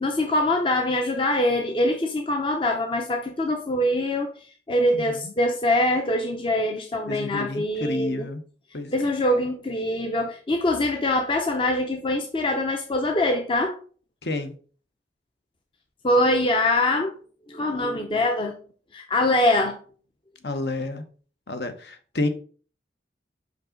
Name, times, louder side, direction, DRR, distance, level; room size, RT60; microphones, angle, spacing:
voice 1, 0.0-4.3 4.7-8.2 8.9-13.8 16.0-17.1 17.5-18.5 18.9-19.8, left 1 dB, 30° left, 0.6 m, -23 dB
voice 2, 4.9-5.3 7.1-8.4 8.7-9.0 14.2-14.5 20.4-21.0 21.5-22.3, left 2 dB, 70° left, 1.0 m, -30 dB
5.4 x 5.3 x 3.8 m
head